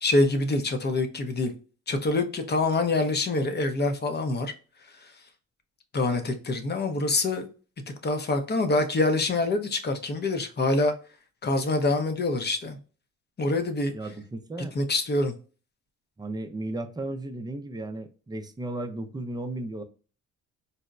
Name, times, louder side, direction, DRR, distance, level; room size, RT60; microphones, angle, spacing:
voice 1, 0.0-1.5 1.9-4.5 5.9-7.5 8.0-10.9 11.4-12.8 13.4-13.9 14.7-15.3, left 2 dB, 35° left, 0.7 m, -25 dB
voice 2, 13.9-14.8 16.2-19.8, right 2 dB, 15° right, 0.5 m, -35 dB
4.0 x 2.1 x 2.4 m
cardioid pair, 90°, 30 cm